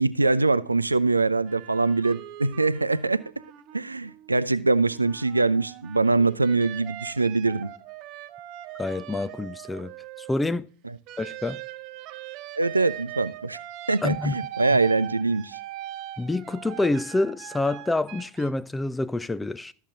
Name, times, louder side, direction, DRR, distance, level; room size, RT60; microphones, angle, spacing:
voice 1, 0.0-3.2 3.7-7.7 12.6-13.6 13.9-15.6, right 3 dB, 80° right, 0.5 m, -23 dB
sound 1, 1.5-4.4 4.8-10.6 11.1-18.5, right 13 dB, 40° right, 0.7 m, -41 dB
voice 2, 8.8-10.7 11.2-11.6 14.0-14.4 16.2-19.7, left 2 dB, 10° left, 0.4 m, -27 dB
13.0 x 7.3 x 3.8 m
figure-of-eight pair, 90°, 0 cm